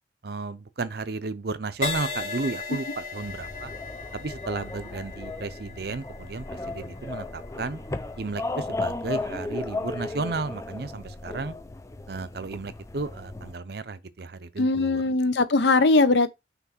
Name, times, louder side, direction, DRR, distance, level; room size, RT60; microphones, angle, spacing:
voice 1, 0.2-3.7 4.1-7.8 8.2-11.5 12.1-15.0, right 3 dB, 55° right, 0.6 m, -33 dB
Crash cymbal, 1.8-9.5 10.1-10.4, left 4 dB, 40° left, 2.4 m, -38 dB
sound 1, 3.2-13.5, left 2 dB, 15° left, 0.4 m, -35 dB
voice 2, 14.6-16.3, left 3 dB, 70° left, 0.7 m, -20 dB
6.0 x 3.2 x 5.7 m
head